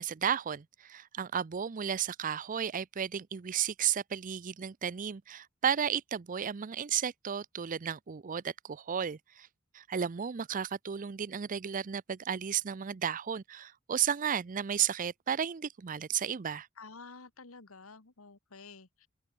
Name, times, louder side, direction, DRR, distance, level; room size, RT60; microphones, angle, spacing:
voice 1, 0.0-9.5 9.7-16.7, right 8 dB, 40° right, 0.5 m, -33 dB
voice 2, 16.8-19.1, left 4 dB, 75° left, 1.7 m, -50 dB
open air
head